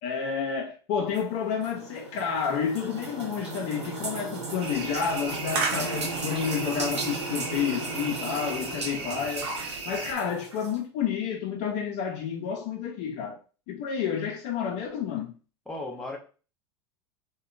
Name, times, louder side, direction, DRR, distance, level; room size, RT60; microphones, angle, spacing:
voice 1, 0.0-9.5 9.8-13.4 13.7-15.3, left 7 dB, 50° left, 0.5 m, -30 dB
sound 1, 1.1-10.8, right 3 dB, 90° right, 0.7 m, -36 dB
sound 2, 4.6-10.1, right 4 dB, 60° right, 0.8 m, -35 dB
voice 2, 15.7-16.2, left 2 dB, 5° left, 0.9 m, -37 dB
2.7 x 2.2 x 2.5 m
hypercardioid pair, 85°, 14 cm